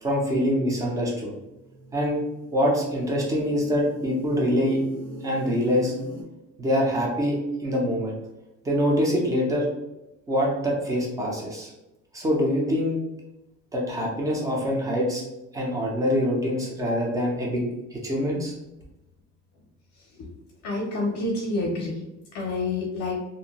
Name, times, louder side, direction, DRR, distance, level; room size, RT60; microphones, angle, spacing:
voice 1, 0.0-1.3 1.9-2.2 2.5-4.8 5.2-5.9 6.6-8.2 8.6-9.7 10.3-11.7 12.1-13.0 13.7-15.2 15.5-17.7 17.9-18.5, equal, 10° right, -2 dB, 0.4 m, -24 dB
sound 1, 1.2-6.2, right 1 dB, 50° right, 1.2 m, -40 dB
voice 2, 20.6-22.0 22.3-23.2, left 2 dB, 60° left, -2 dB, 0.6 m, -28 dB
2.5 x 2.1 x 2.8 m, 0.95 s
cardioid pair, 175°, 32 cm